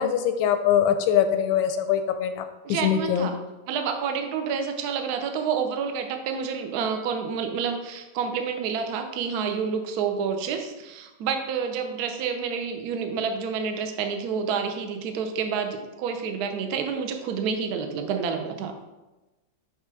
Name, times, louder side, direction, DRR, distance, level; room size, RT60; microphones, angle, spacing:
voice 1, 0.0-2.4 2.8-3.3, left 9 dB, 85° left, 8 dB, 1.3 m, -22 dB
voice 2, 2.6-3.4 3.7-18.7, right 6 dB, 70° right, 6 dB, 1.0 m, -29 dB
6.6 x 3.2 x 4.6 m, 1.1 s
omnidirectional pair, 2.1 m